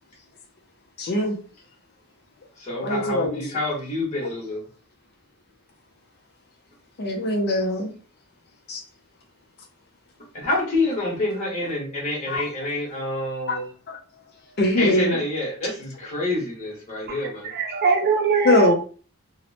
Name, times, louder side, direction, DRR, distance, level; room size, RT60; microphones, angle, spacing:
voice 1, 1.0-1.4 2.8-3.4 7.0-7.9 8.7-8.8 12.3-12.4 13.5-13.6 13.9-14.0 14.6-15.2 18.4-18.7, left 1 dB, 50° left, 0.5 m, -22 dB
voice 2, 2.6-4.6 10.3-13.7 14.8-17.5, left 2 dB, 35° left, 1.1 m, -27 dB
voice 3, 17.1-18.7, right 5 dB, 50° right, 0.6 m, -22 dB
2.8 x 2.0 x 2.7 m
head